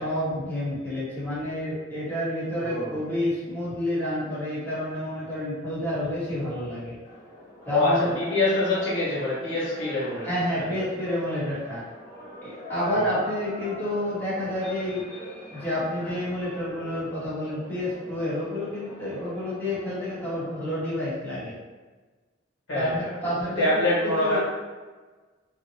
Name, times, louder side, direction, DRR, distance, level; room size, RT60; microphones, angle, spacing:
voice 1, 0.0-7.0 7.7-8.2 10.2-11.8 12.4-15.0 15.5-21.6 22.7-24.4, left 1 dB, 10° left, -11 dB, 0.9 m, -29 dB
voice 2, 2.6-3.0 7.7-10.3 10.7-10.8 12.9-13.1 22.7-23.1 23.6-24.4, left 2 dB, 85° left, -8 dB, 1.3 m, -25 dB
sound 1, 7.0-20.7, left 1 dB, 60° left, 0.9 m, -42 dB
2.7 x 2.1 x 2.7 m, 1.3 s
head